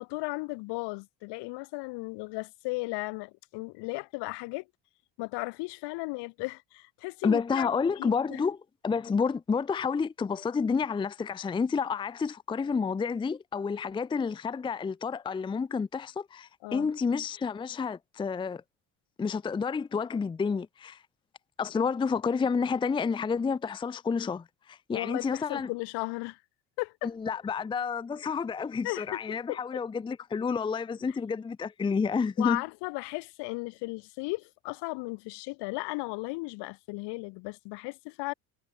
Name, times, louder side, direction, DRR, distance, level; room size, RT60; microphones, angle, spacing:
voice 1, 0.0-4.6 5.2-7.7 8.0-8.4 16.6-16.9 24.9-26.4 26.8-27.1 28.8-29.6 31.1-31.2 32.4-38.3, left 26 dB, 75° left, 5.5 m, -35 dB
voice 2, 7.2-8.6 8.8-18.6 19.2-21.0 21.6-25.7 27.0-32.6, left 5 dB, 10° left, 0.6 m, -30 dB
cardioid pair, 155°, 41 cm